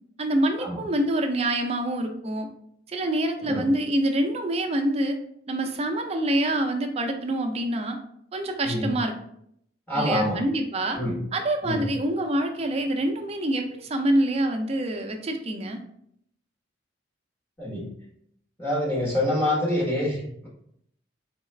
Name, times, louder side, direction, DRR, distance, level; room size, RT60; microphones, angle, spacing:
voice 1, 0.2-2.5 2.9-5.2 5.5-8.0 8.3-9.1 9.9-11.0 11.3-15.8, right 1 dB, 30° right, 5 dB, 0.4 m, -26 dB
voice 2, 8.6-8.9 9.9-10.4 10.9-11.2 11.6-11.9 17.6-17.9 18.6-20.5, left 1 dB, 10° left, -5 dB, 1.0 m, -26 dB
4.0 x 2.3 x 3.2 m, 0.70 s
head